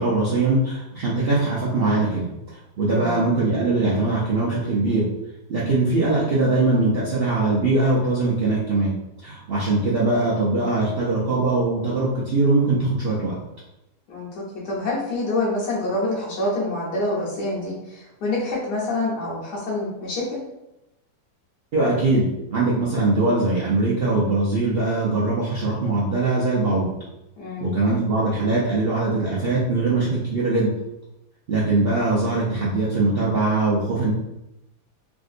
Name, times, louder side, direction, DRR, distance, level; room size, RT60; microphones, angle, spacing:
voice 1, 0.0-5.0 5.5-8.9 9.2-13.4 21.7-26.9 27.6-30.7 31.5-34.1, right 2 dB, 65° right, -7 dB, 0.6 m, -21 dB
voice 2, 2.9-3.2 14.1-20.4 27.4-27.8, left 2 dB, 80° left, -5 dB, 1.6 m, -27 dB
3.6 x 2.6 x 2.4 m, 0.91 s
omnidirectional pair, 1.8 m